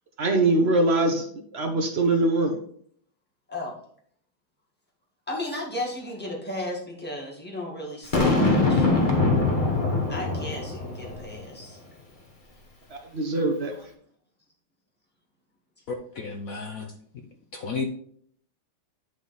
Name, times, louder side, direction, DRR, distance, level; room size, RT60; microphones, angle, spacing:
voice 1, 0.2-1.3 1.5-2.6 12.9-13.7, right 2 dB, 85° right, 3 dB, 0.5 m, -22 dB
voice 2, 5.3-8.9 10.1-11.8, left 1 dB, 5° left, -3 dB, 1.5 m, -35 dB
Boom, 8.1-11.4, left 2 dB, 35° left, 0.9 m, -23 dB
voice 3, 15.9-16.9 17.5-17.8, left 4 dB, 65° left, 4 dB, 0.9 m, -32 dB
9.8 x 3.7 x 4.0 m, 0.62 s
omnidirectional pair, 2.2 m